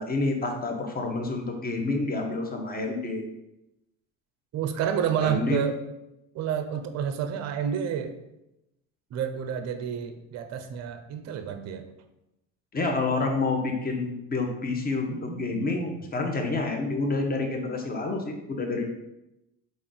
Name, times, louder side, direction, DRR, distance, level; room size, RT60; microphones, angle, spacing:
voice 1, 0.0-3.2 5.2-5.6 12.7-18.9, left 3 dB, 20° left, 3 dB, 0.8 m, -28 dB
voice 2, 4.5-5.8 6.3-8.1 9.1-11.9 15.1-15.9, right 8 dB, 40° right, 8 dB, 0.5 m, -30 dB
3.6 x 2.6 x 3.7 m, 0.91 s
hypercardioid pair, 70°, 42 cm